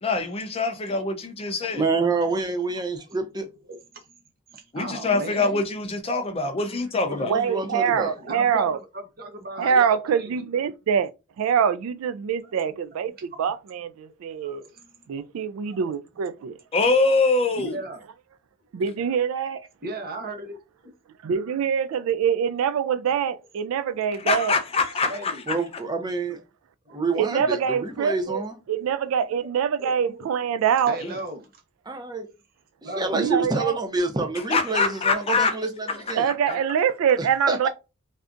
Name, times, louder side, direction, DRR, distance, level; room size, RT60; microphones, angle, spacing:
voice 1, 0.0-1.8 4.7-7.3 16.7-17.7 24.2-25.3 34.5-35.6, left 3 dB, 30° left, 0.5 m, -24 dB
voice 2, 1.7-3.5 7.3-8.1 25.5-26.4 26.9-28.6 31.9-32.3 33.0-36.3 37.2-37.7, right 3 dB, 20° right, 0.6 m, -27 dB
voice 3, 4.5-5.6 7.7-10.4 12.4-12.6 14.3-14.9 15.4-15.5 15.8-15.9 17.6-18.0 19.8-20.6 21.9-22.1 23.0-23.1 23.9-24.1 25.0-25.4 26.9-27.0 27.6-28.1 28.8-28.9 29.4-29.5 29.8-30.2 30.6-31.6 32.8-33.3 35.8-36.6, right 2 dB, 45° right, 0.9 m, -37 dB
voice 4, 7.2-8.8 9.6-11.1 11.4-13.1 13.4-14.6 15.1-16.5 18.7-19.6 21.3-24.6 27.2-28.4 28.7-31.0 33.1-33.8 36.2-37.7, right 7 dB, 75° right, 0.3 m, -24 dB
3.3 x 2.7 x 2.5 m
head